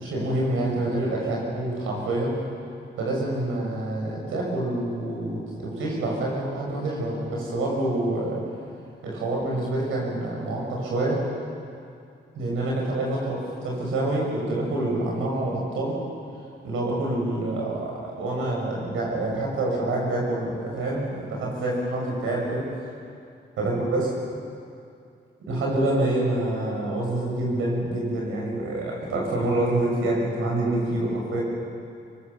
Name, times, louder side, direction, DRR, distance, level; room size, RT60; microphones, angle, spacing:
voice 1, 0.0-2.3 3.0-8.4 9.0-11.3 12.3-16.0 16.6-22.7 23.6-24.1 25.5-31.4, right 1 dB, 90° right, -2 dB, 6.5 m, -27 dB
25.0 x 23.5 x 6.9 m, 2.4 s
supercardioid pair, 45°, 20 cm